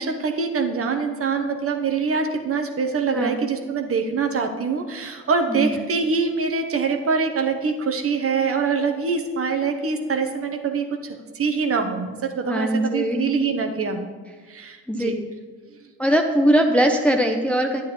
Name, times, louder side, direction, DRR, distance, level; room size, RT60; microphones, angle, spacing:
voice 1, 0.0-14.1 14.5-15.2, right 5 dB, 35° right, 5 dB, 1.1 m, -24 dB
voice 2, 12.4-13.5 14.9-15.1 16.0-17.8, equal, 5° left, 3 dB, 0.6 m, -21 dB
9.9 x 9.0 x 3.2 m, 1.4 s
supercardioid pair, 70°, 37 cm